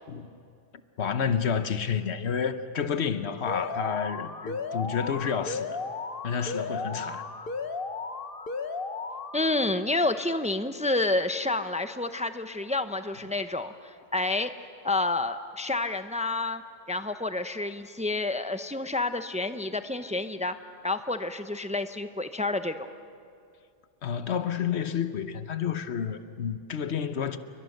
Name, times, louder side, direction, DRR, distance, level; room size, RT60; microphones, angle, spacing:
voice 1, 1.0-5.8 6.2-7.2 24.0-27.4, left 7 dB, 90° left, 1.3 m, -30 dB
Alarm, 3.5-9.5, left 4 dB, 60° left, 1.4 m, -35 dB
voice 2, 9.3-14.5 14.8-16.6 16.9-20.5 20.8-22.9, left 2 dB, 10° right, 0.6 m, -29 dB
29.5 x 23.0 x 6.6 m
omnidirectional pair, 1.1 m